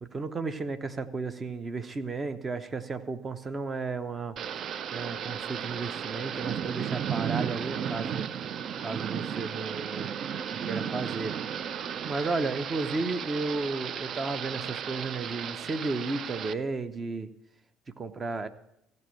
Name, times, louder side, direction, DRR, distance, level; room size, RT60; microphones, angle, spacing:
voice 1, 0.0-4.4 4.9-8.3 8.8-10.3 10.6-11.4 12.0-17.3 17.9-18.5, right 3 dB, 30° right, 11 dB, 0.9 m, -33 dB
Thunder / Rain, 4.4-16.5, right 8 dB, 50° right, 0.4 m, -34 dB
15.0 x 5.4 x 8.5 m, 0.79 s
hypercardioid pair, 55°, 0 cm